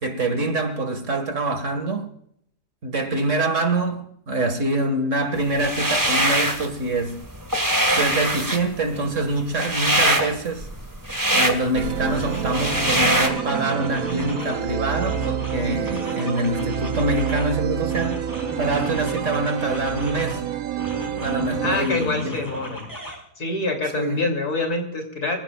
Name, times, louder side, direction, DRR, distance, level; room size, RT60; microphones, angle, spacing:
voice 1, 0.0-2.1 2.8-7.2 7.9-10.7 11.3-18.2 18.6-20.4 21.1-22.6 23.9-24.3, right 2 dB, 50° right, 2.3 m, -25 dB
sound 1, 5.5-6.7 7.1-13.3, right 1 dB, 10° right, 1.7 m, -22 dB
sound 2, 11.6-11.7 12.1-14.7 15.0-17.6 17.9-20.4 20.8-23.1, left 1 dB, 10° left, 4.1 m, -36 dB
sound 3, 11.7-21.9, right 9 dB, 65° right, 1.3 m, -28 dB
voice 2, 21.6-22.9 23.4-25.4, left 2 dB, 75° left, 3.8 m, -26 dB
26.5 x 15.5 x 2.5 m
omnidirectional pair, 1.7 m